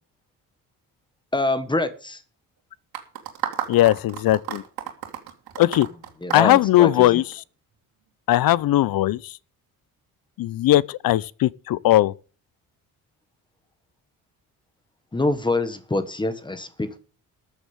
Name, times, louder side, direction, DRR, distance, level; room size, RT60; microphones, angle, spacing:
voice 1, 1.3-2.2 6.2-7.1 15.1-17.0, left 2 dB, 15° left, 1.3 m, -25 dB
sound 1, 2.9-7.3, right 10 dB, 85° right, 2.7 m, -32 dB
voice 2, 3.7-4.6 5.6-5.9 6.3-7.4 8.3-9.4 10.4-12.1, left 15 dB, 75° left, 0.6 m, -19 dB
14.0 x 7.0 x 7.1 m
cardioid pair, 140°, 36 cm